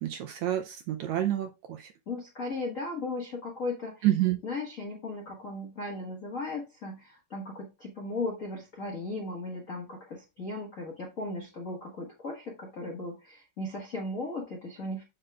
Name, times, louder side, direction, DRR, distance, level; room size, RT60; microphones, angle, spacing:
voice 1, 0.0-1.9 4.0-4.4, right 13 dB, 85° right, 6 dB, 1.6 m, -28 dB
voice 2, 2.1-4.1 4.4-15.0, left 2 dB, 90° left, -2 dB, 0.7 m, -36 dB
7.8 x 6.6 x 2.3 m, 0.27 s
omnidirectional pair, 3.9 m